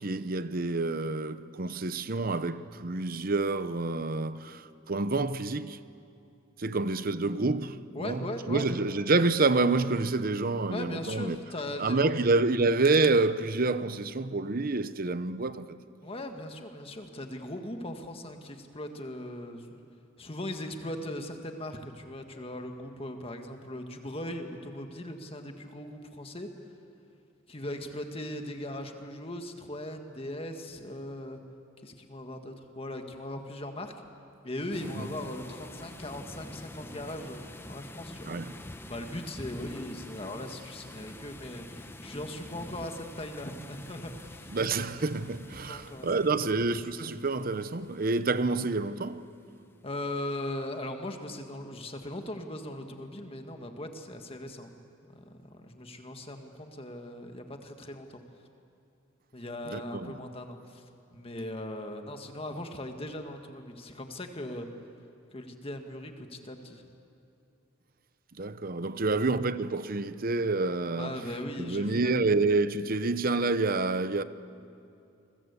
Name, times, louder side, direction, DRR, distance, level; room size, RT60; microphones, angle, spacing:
voice 1, 0.0-5.8 6.6-11.4 11.8-15.8 34.9-35.1 38.2-38.6 44.5-49.2 59.7-60.1 68.4-71.2 71.6-74.2, right 3 dB, 45° right, 0.8 m, -28 dB
voice 2, 7.9-8.7 10.7-12.1 16.0-19.7 20.2-26.5 27.5-31.4 31.8-33.9 34.4-38.4 38.9-44.6 45.7-46.1 49.8-54.7 55.1-58.2 59.3-60.8 61.1-64.7 65.3-66.8 71.0-72.3, left 1 dB, 30° left, 1.7 m, -39 dB
sound 1, 34.7-49.3, left 1 dB, 10° left, 0.9 m, -46 dB
28.5 x 22.0 x 8.2 m
head